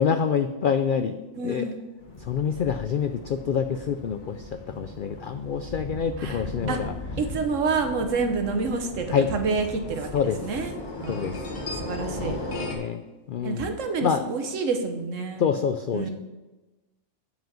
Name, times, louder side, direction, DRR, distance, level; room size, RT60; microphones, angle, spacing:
voice 1, 0.0-1.2 1.4-1.7 2.3-4.4 4.8-6.9 9.1-9.3 10.1-10.4 11.1-11.3 12.2-13.0 13.3-13.7 14.0-14.2 15.4-16.1, left 7 dB, 75° left, 9 dB, 0.4 m, -26 dB
voice 2, 1.3-1.8 6.2-6.4 6.7-6.8 7.2-9.1 9.3-10.1 10.4-11.4 11.8-12.4 13.4-15.5 15.9-16.1, right 4 dB, 65° right, 6 dB, 1.4 m, -28 dB
sound 1, 2.0-12.7, left 1 dB, 35° left, 1.6 m, -37 dB
7.9 x 5.1 x 7.4 m, 1.1 s
omnidirectional pair, 1.4 m